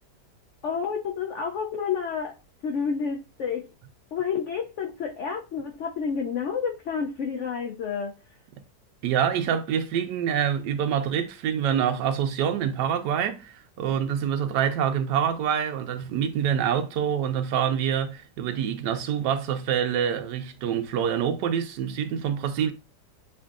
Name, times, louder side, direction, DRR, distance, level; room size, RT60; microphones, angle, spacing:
voice 1, 0.6-2.4 2.6-3.7 4.1-8.2, left 6 dB, 80° left, 0.6 m, -29 dB
voice 2, 9.0-22.7, right 8 dB, 85° right, 1.3 m, -26 dB
6.9 x 2.6 x 2.4 m
omnidirectional pair, 1.8 m